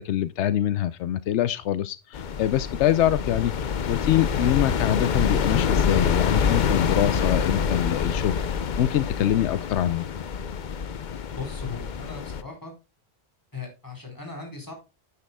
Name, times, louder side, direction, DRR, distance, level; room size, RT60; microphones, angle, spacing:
voice 1, 0.0-10.1, left 12 dB, 85° left, 0.9 m, -24 dB
sound 1, 2.1-12.4, left 6 dB, 50° left, 0.7 m, -26 dB
voice 2, 11.3-12.7 13.5-14.7, left 4 dB, 15° left, 4.1 m, -38 dB
10.5 x 9.8 x 2.2 m
omnidirectional pair, 1.1 m